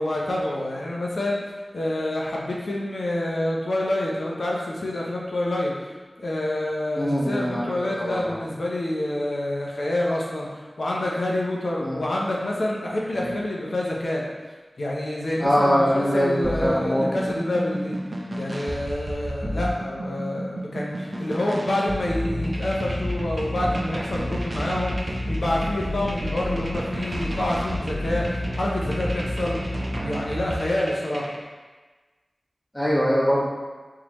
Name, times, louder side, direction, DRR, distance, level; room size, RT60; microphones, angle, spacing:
voice 1, 0.0-1.4 1.7-14.2 14.8-17.9 18.4-29.6 30.0-31.3, left 1 dB, 80° left, -3 dB, 0.7 m, -27 dB
voice 2, 7.0-7.6 8.0-8.4 11.8-12.0 13.1-13.3 15.4-17.1 32.7-33.4, equal, 15° left, -7 dB, 1.3 m, -22 dB
sound 1, 16.4-31.4, equal, 45° right, 0.6 m, -30 dB
3.8 x 3.1 x 3.0 m, 1.3 s
wide cardioid pair, 45°, 0 cm